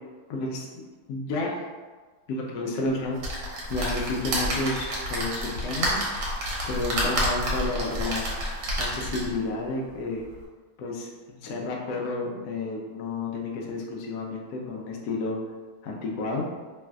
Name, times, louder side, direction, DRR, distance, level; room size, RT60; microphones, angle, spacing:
voice 1, 0.3-0.7 1.1-1.7 2.3-3.2 3.7-6.0 6.6-8.4 8.8-10.2 10.8-15.4 15.8-16.5, left 3 dB, 85° left, -1 dB, 0.8 m, -31 dB
sound 1, 3.2-9.4 10.0-10.1 10.3-10.4, right 1 dB, 65° right, 1.2 m, -29 dB
3.2 x 2.5 x 2.3 m, 1.4 s
omnidirectional pair, 2.2 m